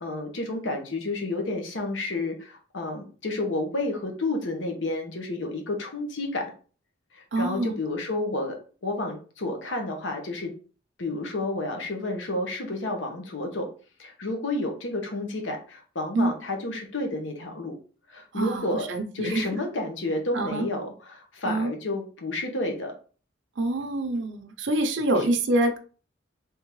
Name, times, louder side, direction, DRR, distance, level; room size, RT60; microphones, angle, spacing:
voice 1, 0.0-6.5 7.1-8.6 8.8-10.5 11.0-13.7 14.0-17.7 18.1-18.9 19.1-22.9, left 2 dB, 80° left, 3 dB, 1.0 m, -30 dB
voice 2, 7.3-7.8 16.1-16.3 18.3-19.5 20.3-20.7 21.5-21.7 23.6-25.8, right 2 dB, 75° right, 5 dB, 0.6 m, -26 dB
3.6 x 3.4 x 3.0 m, 0.38 s
head